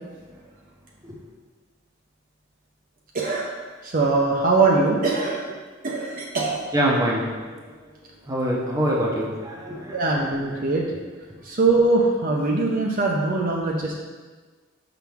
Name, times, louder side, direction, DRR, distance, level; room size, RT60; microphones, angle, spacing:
voice 1, 3.1-3.5 3.8-5.4 5.8-6.6 9.9-10.8 11.4-14.0, right 3 dB, 45° right, -2 dB, 0.7 m, -22 dB
voice 2, 6.7-7.9 8.2-10.5 11.3-11.4, equal, 15° right, -3 dB, 0.9 m, -26 dB
5.9 x 5.9 x 3.6 m, 1.4 s
head